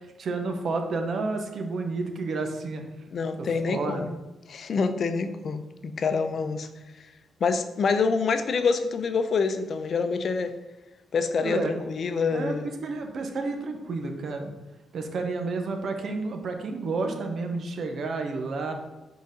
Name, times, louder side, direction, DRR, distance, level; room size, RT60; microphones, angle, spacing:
voice 1, 0.2-2.8 3.4-4.0 11.4-11.8 12.3-12.5 12.8-14.5 14.9-18.7, right 3 dB, 60° right, 4 dB, 0.9 m, -30 dB
voice 2, 3.1-4.1 4.5-6.7 7.4-10.5 11.1-12.7, left 5 dB, 55° left, 9 dB, 0.6 m, -26 dB
5.2 x 4.0 x 5.2 m, 1.1 s
cardioid pair, 80°, 0 cm